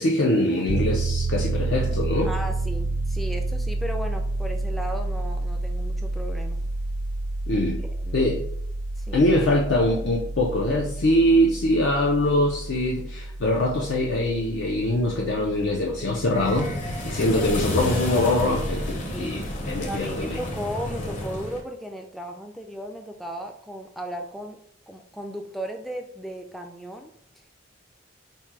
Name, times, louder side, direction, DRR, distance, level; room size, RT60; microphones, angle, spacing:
voice 1, 0.0-2.3 7.5-7.8 8.1-8.4 9.1-16.8 17.0-20.4, left 1 dB, 70° left, -1 dB, 0.5 m, -23 dB
Piano, 0.7-17.4, right 2 dB, 75° right, 0.7 m, -30 dB
voice 2, 2.2-6.6 7.9-8.3 9.0-9.3 19.1-19.4 19.8-24.6 24.9-27.1, equal, ahead, 3 dB, 0.3 m, -35 dB
sound 1, 16.3-21.6, left 1 dB, 40° left, 0.8 m, -30 dB
4.3 x 2.2 x 4.6 m, 0.67 s
head